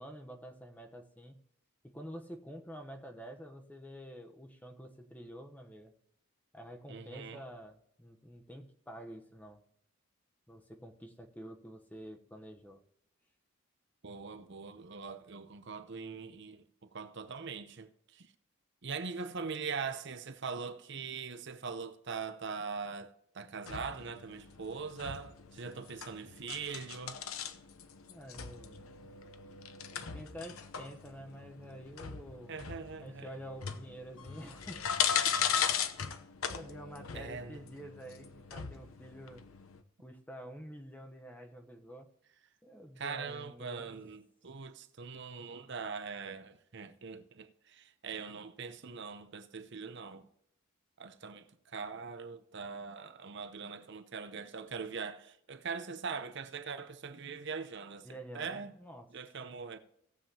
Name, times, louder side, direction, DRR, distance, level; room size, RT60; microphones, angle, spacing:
voice 1, 0.0-1.4 1.8-5.9 6.5-9.6 10.5-12.8 28.1-29.1 30.1-32.6 33.0-34.8 35.2-35.3 36.1-36.2 36.5-39.4 40.0-42.1 42.6-43.9 58.0-59.1, equal, 10° left, 0.9 m, -48 dB
voice 2, 6.9-7.4 14.0-18.3 18.8-27.2 32.5-33.3 37.1-37.6 43.0-50.3 51.0-58.7 59.1-59.8, right 5 dB, 55° right, 0.7 m, -42 dB
sound 1, 23.7-39.8, left 7 dB, 80° left, 0.8 m, -38 dB
18.0 x 7.4 x 2.9 m
head